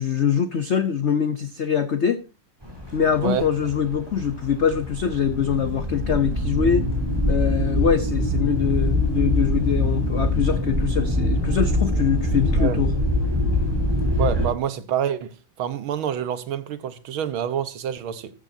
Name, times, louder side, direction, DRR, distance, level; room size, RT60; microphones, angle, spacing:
voice 1, 0.0-2.2 2.9-6.9 7.3-12.9, left 7 dB, 80° left, 0.6 m, -23 dB
sound 1, 2.6-14.5, left 1 dB, 10° right, 4.4 m, -24 dB
voice 2, 14.2-15.3 15.6-18.3, right 9 dB, 85° right, 1.9 m, -27 dB
14.0 x 13.5 x 2.7 m
omnidirectional pair, 2.2 m